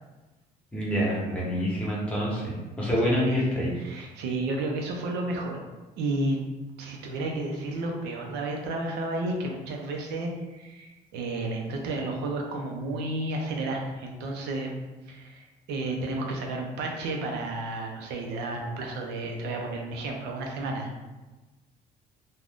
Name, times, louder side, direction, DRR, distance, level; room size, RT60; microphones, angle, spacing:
voice 1, 0.7-3.7, equal, 5° left, -6 dB, 1.0 m, -27 dB
voice 2, 3.0-3.4 3.8-5.6 6.0-6.4 6.8-14.7 15.1-20.9, right 2 dB, 85° right, 1 dB, 0.6 m, -32 dB
2.5 x 2.2 x 3.4 m, 1.2 s
cardioid pair, 110°, 17 cm